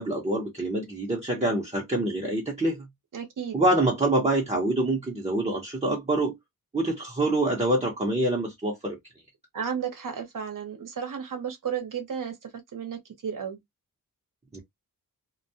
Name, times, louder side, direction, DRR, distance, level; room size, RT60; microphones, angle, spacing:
voice 1, 0.0-2.9 3.5-6.4 6.7-9.0 14.5-14.6, right 1 dB, 20° right, 0.7 m, -26 dB
voice 2, 3.1-3.6 9.5-12.3 12.7-13.6, right 7 dB, 60° right, 0.9 m, -33 dB
2.2 x 2.1 x 2.7 m
wide cardioid pair, 110°, 35 cm